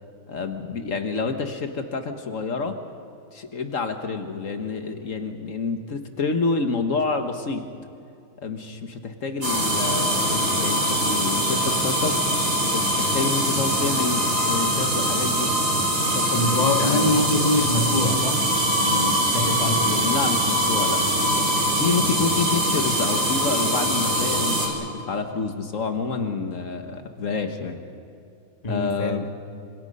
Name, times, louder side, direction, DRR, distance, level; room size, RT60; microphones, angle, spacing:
voice 1, 0.3-2.8 3.3-7.6 8.4-12.2 12.6-15.5 16.1-16.5 16.8-17.1 20.0-21.5 21.8-27.8 28.7-29.3, left 4 dB, 70° left, 6 dB, 1.6 m, -28 dB
sound 1, 9.4-24.7, equal, 70° right, 4.7 m, -23 dB
voice 2, 16.3-18.5 18.7-20.1 28.6-29.2, left 2 dB, 30° left, 4 dB, 1.8 m, -24 dB
28.0 x 25.5 x 5.4 m, 2.6 s
omnidirectional pair, 1.4 m